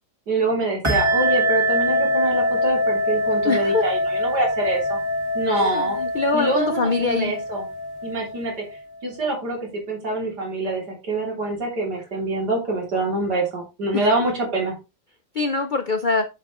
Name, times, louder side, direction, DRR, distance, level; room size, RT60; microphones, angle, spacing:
voice 1, 0.3-5.0 5.3-6.0 6.3-7.6 8.0-14.7, right 2 dB, 85° right, 3.6 m, -25 dB
sound 1, 0.8-9.0, equal, 20° right, 1.7 m, -24 dB
voice 2, 3.4-3.9 5.5-7.3 13.9-14.0 15.3-16.3, left 3 dB, 75° left, 0.4 m, -23 dB
7.9 x 7.1 x 3.0 m
omnidirectional pair, 1.7 m